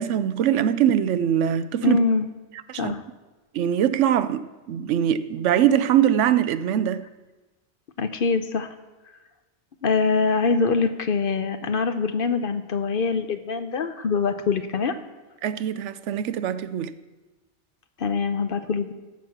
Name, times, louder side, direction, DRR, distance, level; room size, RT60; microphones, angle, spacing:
voice 1, 0.0-2.0 2.7-2.9 3.5-7.1 15.4-16.9, right 10 dB, 85° right, 0.9 m, -22 dB
voice 2, 1.8-2.3 2.8-3.0 8.0-8.7 9.8-14.9 18.0-18.9, left 4 dB, 55° left, 0.8 m, -24 dB
14.5 x 6.3 x 5.8 m
omnidirectional pair, 1.2 m